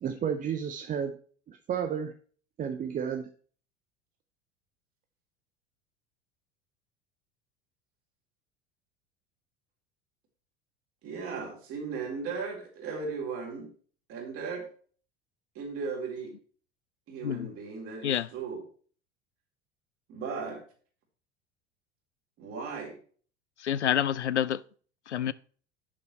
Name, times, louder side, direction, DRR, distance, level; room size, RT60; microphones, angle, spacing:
voice 1, 0.0-1.2 1.5-2.1 2.6-3.3, right 7 dB, 25° right, 0.7 m, -32 dB
voice 2, 11.0-13.7 14.1-14.6 15.6-16.3 17.1-18.6 20.1-20.6 22.4-23.0, right 5 dB, 40° right, 3.7 m, -36 dB
voice 3, 23.6-24.6 25.1-25.3, left 10 dB, 80° left, 0.5 m, -28 dB
11.0 x 6.8 x 3.3 m
figure-of-eight pair, 75°, 34 cm